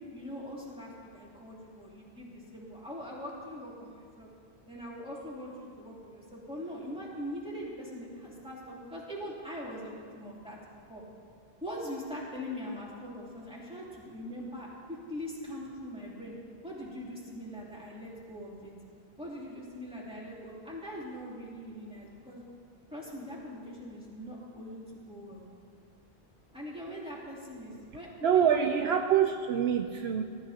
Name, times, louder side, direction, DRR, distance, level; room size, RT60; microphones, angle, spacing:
voice 1, 0.1-4.3 4.7-11.0 11.6-16.3 16.6-18.7 19.2-22.4 22.9-25.4 26.5-29.0, equal, 5° right, -6 dB, 3.0 m, -42 dB
voice 2, 28.2-30.2, right 8 dB, 70° right, 5 dB, 0.8 m, -25 dB
20.5 x 13.0 x 2.9 m, 2.3 s
omnidirectional pair, 1.1 m